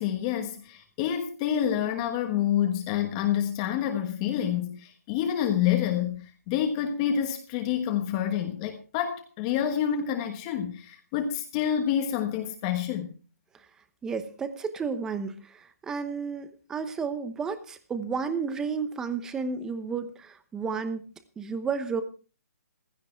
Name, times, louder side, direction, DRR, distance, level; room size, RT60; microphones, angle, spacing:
voice 1, 0.0-13.1, left 9 dB, 20° left, 6 dB, 1.2 m, -28 dB
voice 2, 14.0-21.0 21.4-22.0, right 5 dB, 5° right, 12 dB, 0.9 m, -32 dB
16.0 x 13.5 x 4.5 m, 0.36 s
hypercardioid pair, 170°, 9 cm